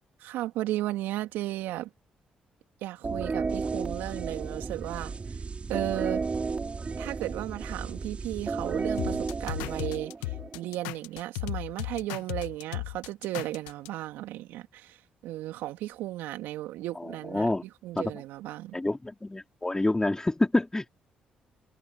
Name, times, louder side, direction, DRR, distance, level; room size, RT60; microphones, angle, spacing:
voice 1, 0.2-1.9 2.8-5.1 5.7-6.2 7.0-15.0 15.2-18.8, right 15 dB, 75° right, 3.1 m, -35 dB
sound 1, 3.0-10.7, right 4 dB, 35° right, 6.6 m, -33 dB
sound 2, 9.0-13.9, left 20 dB, 85° left, 1.5 m, -35 dB
voice 2, 17.0-17.6 18.0-18.1 18.7-21.0, left 2 dB, 15° left, 4.4 m, -27 dB
hypercardioid pair, 50°, 3 cm